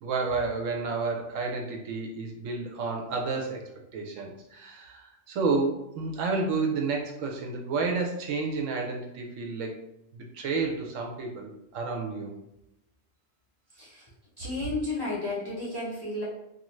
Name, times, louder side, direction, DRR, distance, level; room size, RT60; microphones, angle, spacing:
voice 1, 0.0-9.8 10.1-12.3, right 4 dB, 75° right, 1 dB, 0.9 m, -31 dB
voice 2, 13.8-14.1 14.4-16.2, left 2 dB, 30° left, -7 dB, 0.5 m, -32 dB
2.5 x 2.4 x 3.0 m, 0.84 s
omnidirectional pair, 1.4 m